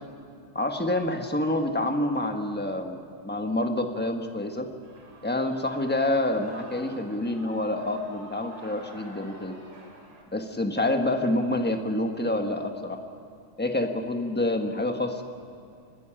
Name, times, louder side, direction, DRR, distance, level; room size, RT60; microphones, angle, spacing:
voice 1, 0.5-4.7 5.2-9.6 10.3-13.0 13.6-15.2, left 1 dB, 5° left, 4 dB, 0.8 m, -27 dB
Shout / Cheering, 4.8-10.2, equal, 60° right, 3.1 m, -48 dB
29.5 x 11.0 x 10.0 m, 2.4 s
omnidirectional pair, 2.4 m